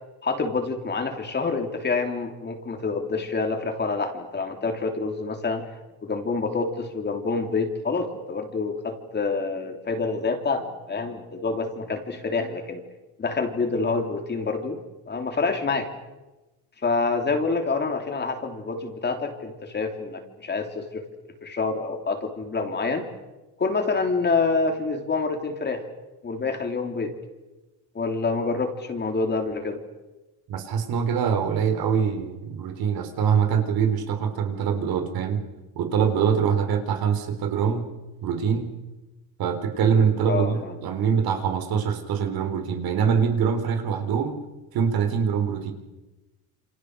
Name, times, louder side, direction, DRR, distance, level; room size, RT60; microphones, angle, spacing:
voice 1, 0.2-5.6 6.0-12.8 13.2-14.8 15.1-15.9 16.8-21.0 21.4-23.0 23.6-25.8 26.2-27.1 27.9-29.8 40.3-40.7, left 4 dB, 25° left, 5 dB, 3.4 m, -27 dB
voice 2, 30.5-35.4 35.8-37.9 38.2-38.7 39.4-44.4 44.7-45.7, right 7 dB, 70° right, 6 dB, 4.3 m, -24 dB
28.5 x 28.0 x 6.7 m, 1.1 s
cardioid pair, 145°, 38 cm